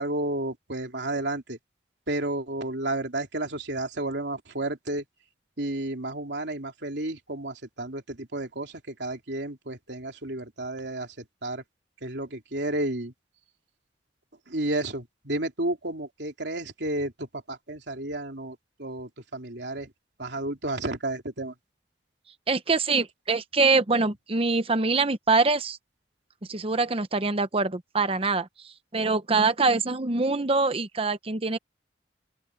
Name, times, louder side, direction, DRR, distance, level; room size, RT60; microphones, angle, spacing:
voice 1, 0.0-1.6 2.1-5.0 5.6-11.6 12.0-13.1 14.5-19.9 20.2-21.5, right 2 dB, 70° right, 3.2 m, -32 dB
voice 2, 22.5-25.8 26.5-28.5 28.9-31.6, right 3 dB, 30° right, 0.9 m, -24 dB
open air
head